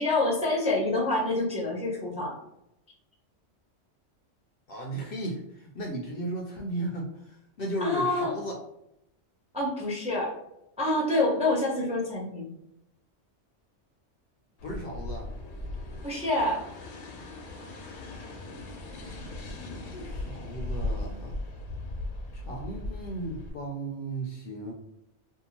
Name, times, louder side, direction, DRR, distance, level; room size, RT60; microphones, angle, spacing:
voice 1, 0.0-2.4 7.8-8.3 9.5-10.3 10.8-12.5 16.0-16.6, left 2 dB, 10° right, -3 dB, 0.5 m, -27 dB
voice 2, 4.7-8.6 14.6-15.3 19.6-21.4 22.3-24.7, right 1 dB, 60° left, 0 dB, 0.6 m, -35 dB
sound 1, 14.6-23.5, left 2 dB, 85° left, 1.0 m, -38 dB
2.7 x 2.3 x 2.8 m, 0.83 s
omnidirectional pair, 1.3 m